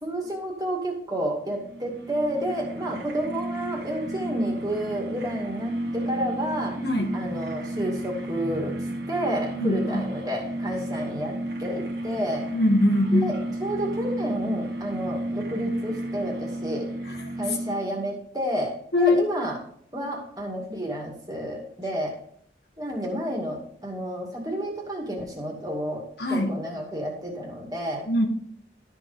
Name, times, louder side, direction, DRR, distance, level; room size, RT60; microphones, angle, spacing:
voice 1, 0.0-6.7 7.1-8.7 9.1-12.4 13.1-16.8 17.4-19.6 19.9-22.1 22.8-26.0 26.3-28.1, equal, 20° right, -1 dB, 2.2 m, -30 dB
sound 1, 1.4-18.1, right 1 dB, 60° right, 1.9 m, -33 dB
voice 2, 6.8-7.1 9.6-10.1 12.5-13.3 18.9-19.2 26.2-26.5 28.1-28.3, left 1 dB, 60° left, 4 dB, 1.4 m, -22 dB
12.5 x 4.6 x 5.1 m, 0.65 s
head